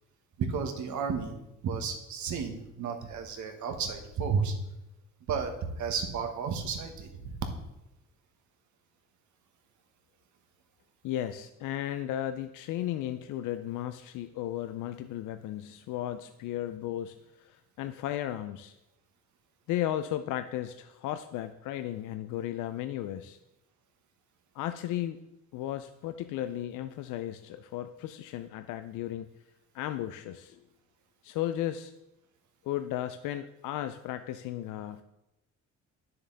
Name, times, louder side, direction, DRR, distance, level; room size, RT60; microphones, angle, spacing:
voice 1, 0.4-1.4 1.6-4.5 5.3-5.5 5.8-7.4, right 6 dB, 75° right, 5 dB, 1.4 m, -32 dB
voice 2, 11.0-18.8 19.7-23.4 24.5-25.2 25.5-29.3 29.7-30.6 31.2-31.9 32.6-35.0, left 12 dB, 85° left, 9 dB, 0.5 m, -35 dB
9.9 x 6.7 x 3.9 m, 0.90 s
cardioid pair, 90°, 30 cm